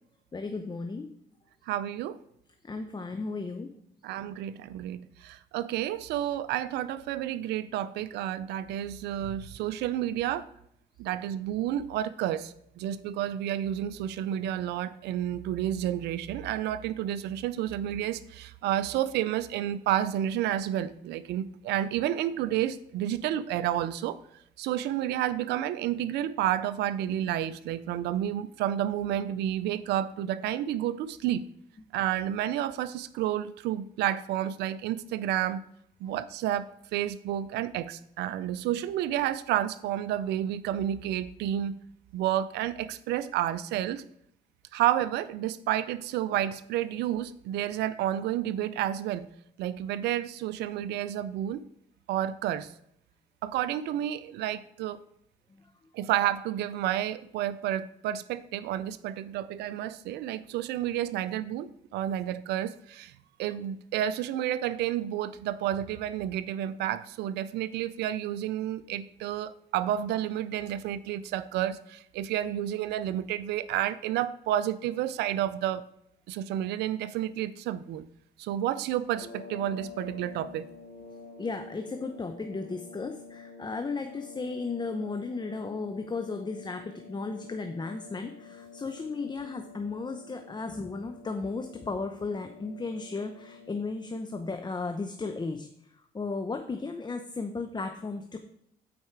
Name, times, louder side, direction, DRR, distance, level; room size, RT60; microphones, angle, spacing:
voice 1, 0.3-1.1 2.6-3.7 55.5-55.7 56.0-56.1 81.4-98.4, left 3 dB, 25° left, 6 dB, 0.8 m, -35 dB
voice 2, 1.7-2.2 4.0-10.5 11.0-24.2 24.6-31.5 31.9-35.6 36.0-41.8 42.1-44.0 44.7-49.3 49.6-51.6 52.1-52.7 53.4-55.0 55.9-63.1 63.4-75.9 76.3-78.0 78.4-80.7, right 11 dB, 85° right, 16 dB, 0.4 m, -30 dB
sound 1, 79.1-94.2, left 5 dB, 75° left, 2.2 m, -48 dB
8.7 x 4.8 x 4.6 m, 0.73 s
supercardioid pair, 65°, 17 cm